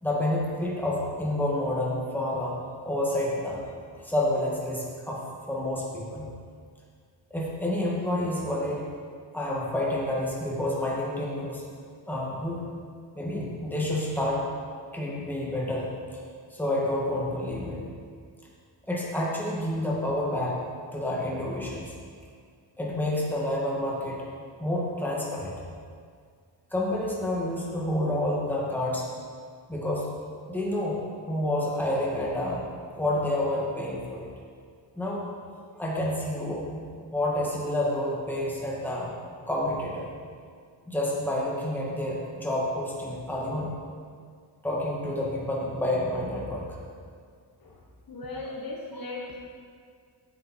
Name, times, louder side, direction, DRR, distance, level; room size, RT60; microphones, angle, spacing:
voice 1, 0.0-3.6 4.0-5.2 5.5-6.3 7.3-8.8 9.3-11.6 12.1-12.6 13.2-14.5 14.9-15.9 16.5-17.8 18.9-20.6 20.9-21.9 22.8-24.2 24.6-25.5 26.7-29.1 29.7-30.1 30.5-31.0 31.3-32.6 33.0-34.3 35.0-35.2 35.7-36.9 37.1-39.1 39.5-40.1 40.9-43.7 44.6-46.7, left 1 dB, 5° left, -5 dB, 2.1 m, -29 dB
voice 2, 48.1-49.4, left 2 dB, 50° left, -2 dB, 1.5 m, -37 dB
9.9 x 7.6 x 4.6 m, 2.1 s
cardioid pair, 105°, 45 cm